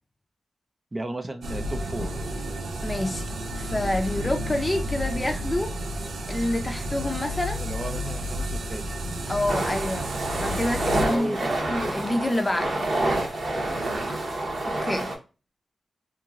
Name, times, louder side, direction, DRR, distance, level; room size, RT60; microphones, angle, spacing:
voice 1, 0.9-2.2 7.6-9.1 11.0-11.7 13.8-14.2, right 2 dB, 30° right, 0.4 m, -34 dB
sound 1, 1.4-11.1, equal, 85° right, 0.4 m, -31 dB
voice 2, 2.8-3.3 3.6-5.8 6.3-7.6 9.3-12.8 14.6-15.1, left 1 dB, 20° left, 0.5 m, -28 dB
sound 2, 9.5-15.2, right 2 dB, 60° right, 0.9 m, -28 dB
2.9 x 2.8 x 2.4 m
cardioid pair, 70°, 0 cm